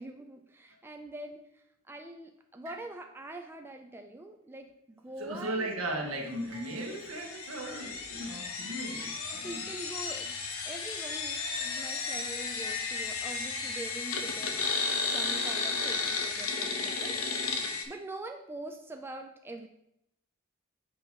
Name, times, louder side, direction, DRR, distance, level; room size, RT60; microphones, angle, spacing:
voice 1, 0.0-5.7 9.3-10.4 10.7-14.6 15.1-17.2 17.9-19.7, right 2 dB, 10° right, 4 dB, 0.4 m, -44 dB
sound 1, 2.7-3.6 6.5-7.2 9.0-9.8 11.1-11.6 13.6-14.2 16.3-17.0, right 3 dB, 90° right, 1.8 m, -54 dB
voice 2, 5.2-9.7 15.2-15.4, right 1 dB, 75° right, 1 dB, 1.5 m, -37 dB
sound 2, 6.6-17.8, left 4 dB, 80° left, 1.0 m, -34 dB
7.5 x 3.0 x 6.0 m, 0.79 s
head